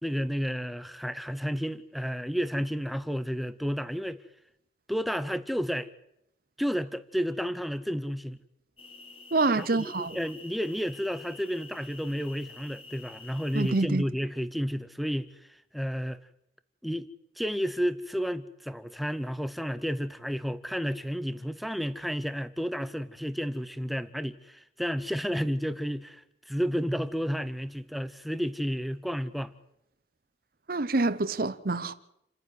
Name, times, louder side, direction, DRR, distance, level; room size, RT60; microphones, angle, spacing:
voice 1, 0.0-4.2 4.9-5.9 6.6-8.4 9.6-15.3 15.7-16.2 16.8-17.1 17.4-29.5, equal, ahead, 0.7 m, -31 dB
sound 1, 8.8-13.8, left 3 dB, 30° left, 1.9 m, -48 dB
voice 2, 9.3-10.2 13.5-14.0 30.7-31.9, right 3 dB, 50° right, 0.8 m, -26 dB
29.0 x 9.8 x 9.4 m
head